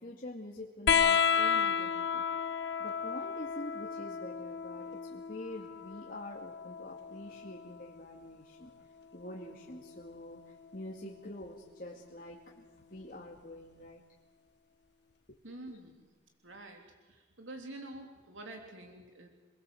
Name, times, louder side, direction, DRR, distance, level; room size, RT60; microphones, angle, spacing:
voice 1, 0.0-2.2 2.8-8.7 9.1-14.0 15.7-15.8, left 1 dB, 45° left, -1 dB, 2.3 m, -46 dB
sound 1, 0.9-7.9 9.3-10.1 11.4-11.5, left 7 dB, 60° left, 1.2 m, -32 dB
voice 2, 15.4-16.1 16.4-19.3, right 2 dB, 85° right, 2 dB, 3.5 m, -47 dB
28.0 x 23.0 x 7.9 m, 1.3 s
head